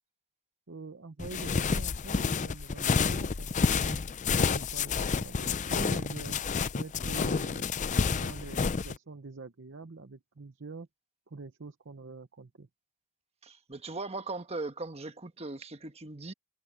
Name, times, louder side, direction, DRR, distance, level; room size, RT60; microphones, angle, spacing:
voice 1, 0.7-4.0 4.4-6.4 6.8-7.7 8.2-10.9 11.3-12.7, right 3 dB, 55° right, 0.8 m, -45 dB
sound 1, 1.2-8.9, left 5 dB, 35° left, 0.4 m, -29 dB
voice 2, 13.4-16.3, right 3 dB, 30° right, 1.2 m, -39 dB
head